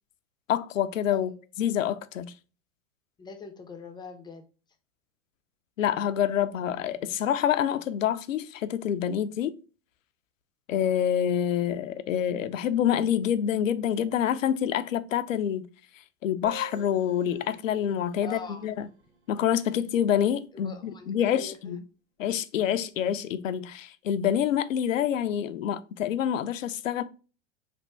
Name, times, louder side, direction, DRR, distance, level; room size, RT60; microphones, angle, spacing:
voice 1, 0.5-1.3 1.6-2.3 5.8-9.5 10.7-15.7 16.2-18.9 19.3-21.8 22.2-27.0, left 9 dB, 85° left, 0.5 m, -27 dB
voice 2, 3.2-4.4 18.2-18.6 20.5-21.8, left 4 dB, 10° left, 0.4 m, -43 dB
sound 1, 16.4-20.0, right 4 dB, 70° right, 1.5 m, -49 dB
3.4 x 2.2 x 4.3 m
hypercardioid pair, 105°, 38 cm